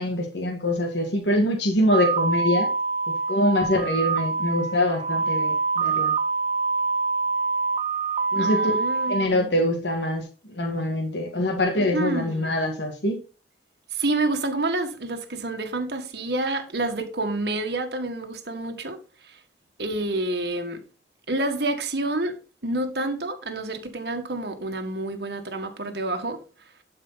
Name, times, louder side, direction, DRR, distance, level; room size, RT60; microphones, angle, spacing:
voice 1, 0.0-2.7 3.3-6.1 8.3-8.8 9.1-13.2, left 1 dB, 75° left, 1.9 m, -24 dB
sound 1, 1.9-9.3, right 4 dB, 30° right, 0.4 m, -25 dB
voice 2, 8.4-9.6 11.7-12.5 13.9-19.0 19.2-19.4 19.8-20.8 21.3-22.4 22.6-26.4, right 2 dB, 60° right, 1.7 m, -28 dB
11.5 x 5.1 x 4.0 m
head